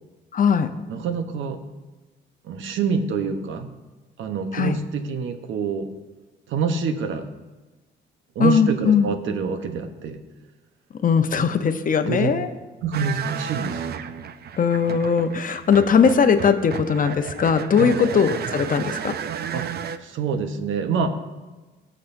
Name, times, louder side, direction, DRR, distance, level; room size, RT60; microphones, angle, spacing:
voice 1, 0.3-0.7 4.5-4.8 8.4-9.1 11.0-12.5 14.6-19.2, left 6 dB, 45° left, 8 dB, 0.8 m, -19 dB
voice 2, 0.9-1.6 2.4-3.7 4.2-5.9 6.5-7.3 8.3-10.2 11.3-11.4 12.1-12.3 12.8-14.1 17.8-18.0 19.5-19.6 20.0-21.1, right 5 dB, 75° right, 7 dB, 1.0 m, -26 dB
sound 1, 12.9-20.0, right 8 dB, 55° right, 0.5 m, -33 dB
18.5 x 6.4 x 2.7 m, 1.2 s
cardioid pair, 90°, 20 cm